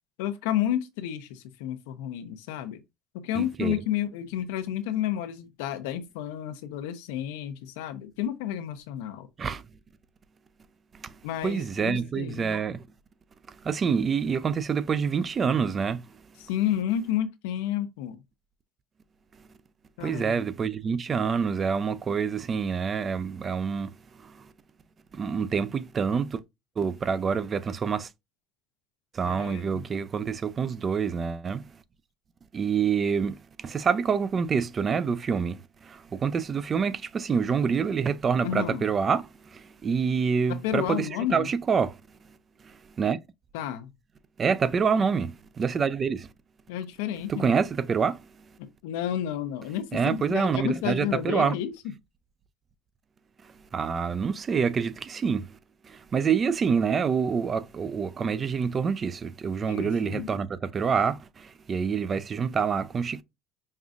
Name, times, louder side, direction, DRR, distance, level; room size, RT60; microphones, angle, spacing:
voice 1, 0.2-2.8 3.1-9.3 11.2-12.6 16.4-18.2 20.0-20.4 29.2-29.8 38.4-38.9 40.5-41.5 43.5-43.9 46.7-47.5 48.6-51.7 59.7-60.3, left 11 dB, 90° left, 0.6 m, -31 dB
voice 2, 3.3-3.8 9.4-9.6 10.9-11.2 11.4-12.8 13.6-16.0 20.0-23.9 24.2-24.5 25.1-26.4 26.8-28.1 29.1-31.6 32.5-42.0 42.6-43.2 44.4-46.3 47.3-48.2 49.9-51.6 53.7-55.5 55.8-63.2, right 6 dB, 30° right, 0.4 m, -27 dB
5.3 x 2.4 x 2.4 m
supercardioid pair, 115°, 0 cm